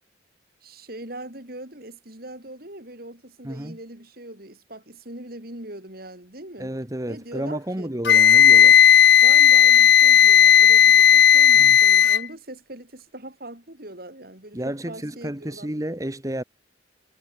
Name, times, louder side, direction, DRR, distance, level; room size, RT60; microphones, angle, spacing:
voice 1, 0.6-6.7 7.1-7.9 9.1-15.7, right 1 dB, 50° right, 5.0 m, -41 dB
voice 2, 3.4-3.8 6.6-8.8 11.6-11.8 14.5-16.4, right 1 dB, 20° right, 1.4 m, -31 dB
Wind instrument woodwind instrument, 8.0-12.2, left 9 dB, 65° left, 0.6 m, -13 dB
head